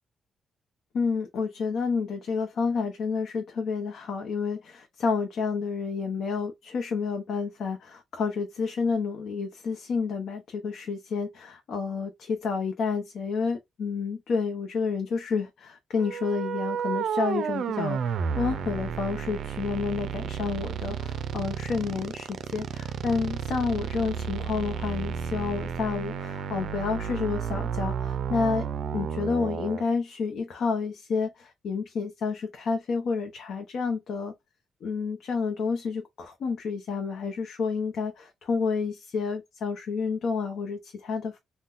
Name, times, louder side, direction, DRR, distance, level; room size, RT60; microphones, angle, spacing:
voice 1, 0.9-28.7 28.9-34.3 34.8-41.4, left 5 dB, 75° left, 0.6 m, -30 dB
sound 1, 16.0-29.8, right 7 dB, 75° right, 0.4 m, -32 dB
3.7 x 2.1 x 2.4 m
cardioid pair, 100°, 0 cm